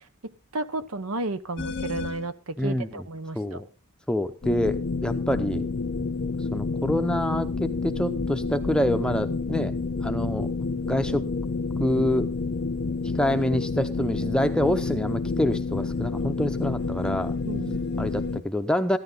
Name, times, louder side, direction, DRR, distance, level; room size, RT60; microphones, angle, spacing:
voice 1, 0.5-3.6 17.4-17.8, right 2 dB, 75° right, 13 dB, 1.0 m, -32 dB
sound 1, 1.6-2.3 4.4-18.4, left 4 dB, 50° left, 0.6 m, -29 dB
voice 2, 2.6-3.0 3.3-3.7 4.1-5.7 6.5-9.7 10.0-10.5 10.8-11.3 11.8-12.3 13.1-17.4 18.0-19.0, left 1 dB, 5° left, 8 dB, 0.6 m, -26 dB
14.0 x 11.5 x 3.9 m, 0.35 s
head